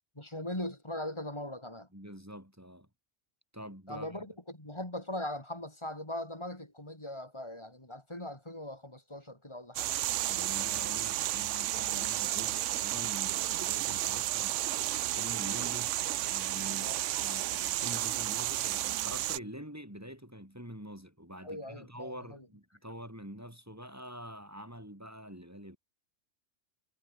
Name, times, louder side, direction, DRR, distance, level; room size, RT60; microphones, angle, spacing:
voice 1, 0.2-1.9 3.9-9.9 16.8-17.0 21.4-22.5, left 1 dB, 20° left, 3.8 m, -40 dB
voice 2, 1.9-2.9 3.5-4.2 10.2-14.8 15.1-16.0 16.3-25.8, equal, 10° right, 4.8 m, -46 dB
sound 1, 9.8-19.4, right 14 dB, 80° right, 0.9 m, -32 dB
sound 2, 10.1-14.6, left 3 dB, 65° left, 3.9 m, -57 dB
omnidirectional pair, 1.3 m